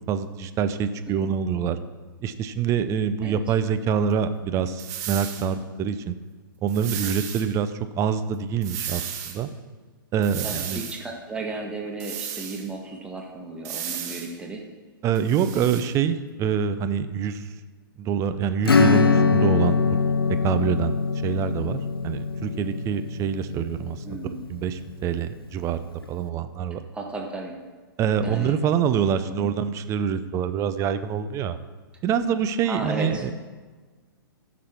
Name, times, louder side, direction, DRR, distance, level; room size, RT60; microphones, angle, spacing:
voice 1, 0.0-1.8 2.2-6.1 6.6-7.7 8.0-9.5 10.1-10.8 15.0-17.5 18.0-20.0 20.4-20.9 21.2-24.0 24.5-26.8 28.0-31.6 32.0-33.3, right 7 dB, 25° right, 10 dB, 0.6 m, -25 dB
sound 1, 4.8-5.5 6.7-7.5 8.6-9.4 10.2-11.0 12.0-12.7 13.6-14.3 15.1-15.9, right 9 dB, 45° right, 1.6 m, -34 dB
voice 2, 10.4-14.6 24.0-24.4 26.9-27.6 28.2-28.5 32.6-33.3, right 3 dB, 10° right, 0 dB, 1.5 m, -34 dB
Acoustic guitar / Strum, 18.6-24.9, left 5 dB, 85° left, 0.8 m, -23 dB
14.5 x 6.2 x 4.5 m, 1.3 s
figure-of-eight pair, 115°, 12 cm